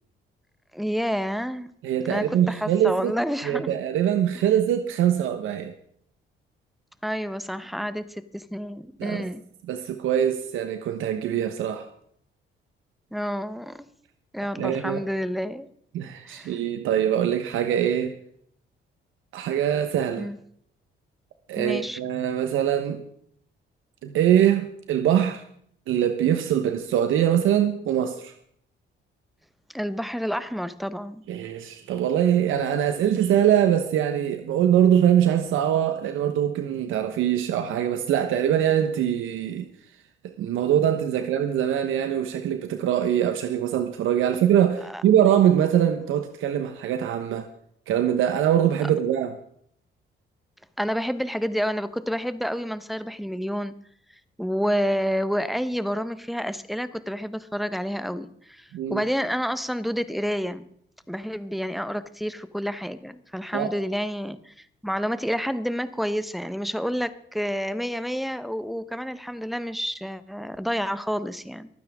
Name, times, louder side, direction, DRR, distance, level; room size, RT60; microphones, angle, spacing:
voice 1, 0.7-1.7 2.0-3.7 7.0-9.4 13.1-13.8 14.3-15.7 16.2-16.6 20.2-20.4 21.6-22.0 29.7-31.2 44.8-45.0 50.8-53.7 54.4-60.7 61.1-71.7, equal, ahead, 1.0 m, -29 dB
voice 2, 1.8-3.1 3.4-5.7 9.0-9.3 9.7-11.9 14.6-15.0 15.9-18.1 19.3-20.3 21.5-23.0 24.0-25.4 25.9-28.3 31.3-39.7 40.2-47.5 47.9-49.3 58.7-59.0 63.5-63.7, right 10 dB, 85° right, 1.1 m, -23 dB
24.5 x 9.4 x 3.6 m
cardioid pair, 90°, 20 cm